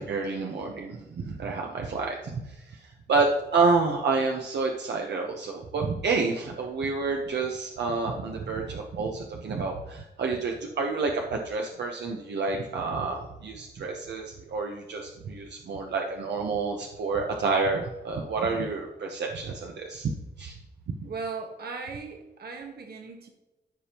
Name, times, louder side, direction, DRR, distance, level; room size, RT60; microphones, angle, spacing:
voice 1, 0.0-20.1 20.4-20.6, right 4 dB, 85° right, 1 dB, 1.0 m, -29 dB
voice 2, 21.0-23.3, right 4 dB, 65° right, 3 dB, 1.3 m, -37 dB
14.5 x 5.2 x 3.0 m, 1.0 s
wide cardioid pair, 140°, 17 cm